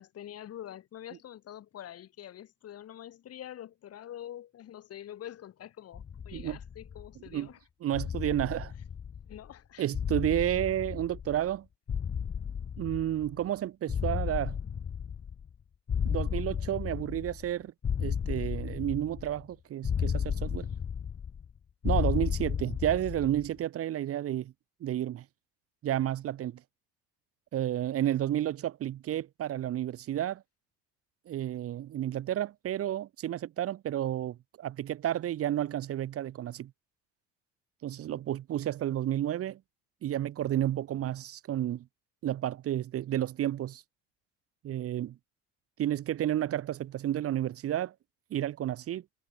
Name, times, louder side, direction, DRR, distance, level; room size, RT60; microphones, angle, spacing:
voice 1, 0.0-7.6 9.3-9.9, left 11 dB, 55° left, 5.9 m, -45 dB
sound 1, 5.9-7.3 7.9-9.5 9.9-11.6 11.9-13.5 13.9-15.5 15.9-17.5 17.8-19.4 19.8-21.5 21.8-23.5, left 7 dB, 35° left, 3.6 m, -33 dB
voice 2, 7.8-8.7 9.8-11.7 12.8-14.6 16.0-17.7 18.0-20.7 21.8-24.5 24.8-25.2 25.8-26.6 27.5-30.4 31.3-36.7 37.8-39.6 40.0-41.8 42.2-43.8 44.6-45.2 45.8-47.9 48.3-49.0, right 12 dB, 50° right, 1.3 m, -31 dB
supercardioid pair, 90°, 30 cm